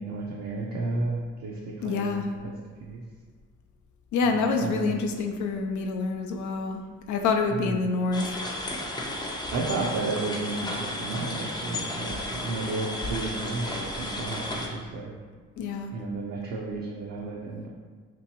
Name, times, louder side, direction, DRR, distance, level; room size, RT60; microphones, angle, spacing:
voice 1, 0.0-2.2 2.4-2.5 2.8-3.0 4.6-4.9 7.5-7.7 9.5-15.1 15.9-17.7, right 3 dB, 60° right, -2 dB, 0.5 m, -32 dB
voice 2, 1.8-2.3 4.1-6.8 7.1-8.4 15.6-15.9, left 4 dB, 75° left, 3 dB, 0.5 m, -27 dB
sound 1, 8.1-14.7, left 1 dB, 15° left, 0.4 m, -33 dB
3.4 x 3.0 x 2.9 m, 1.5 s
cardioid pair, 90°, 30 cm